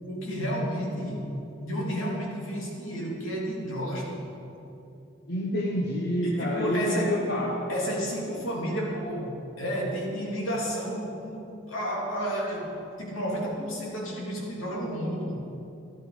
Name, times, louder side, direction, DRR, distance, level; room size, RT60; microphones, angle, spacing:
voice 1, 0.1-1.3 1.6-4.2 6.2-7.2 7.7-15.4, equal, 85° left, -3 dB, 3.0 m, -31 dB
voice 2, 5.3-7.6, equal, 55° left, -1 dB, 1.1 m, -27 dB
13.0 x 12.0 x 5.1 m, 2.8 s
head